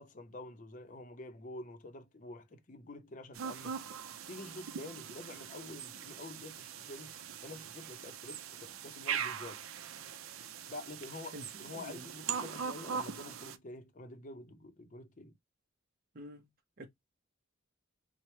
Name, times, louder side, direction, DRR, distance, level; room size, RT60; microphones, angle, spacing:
voice 1, 0.0-3.8 4.3-9.6 10.7-15.3, left 2 dB, 40° left, 0.5 m, -48 dB
sound 1, 3.3-13.6, right 7 dB, 90° right, 0.4 m, -41 dB
voice 2, 11.7-12.0 16.1-16.5 16.8-16.9, equal, 45° right, 0.7 m, -47 dB
4.3 x 2.0 x 3.1 m
head